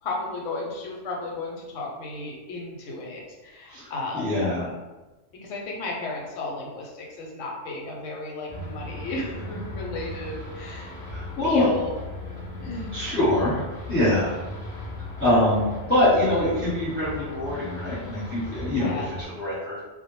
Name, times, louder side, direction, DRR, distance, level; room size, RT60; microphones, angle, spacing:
voice 1, 0.0-4.4 5.4-11.0 11.4-11.9 12.6-13.0 18.7-19.2, left 2 dB, 90° left, -1 dB, 1.0 m, -34 dB
voice 2, 3.7-4.7 11.1-11.7 12.9-13.6 13.9-14.3 15.2-15.6 15.9-19.8, left 1 dB, 10° left, -11 dB, 0.8 m, -24 dB
sound 1, 8.5-19.2, left 2 dB, 45° left, 0.6 m, -37 dB
2.1 x 2.0 x 3.0 m, 1.2 s
omnidirectional pair, 1.2 m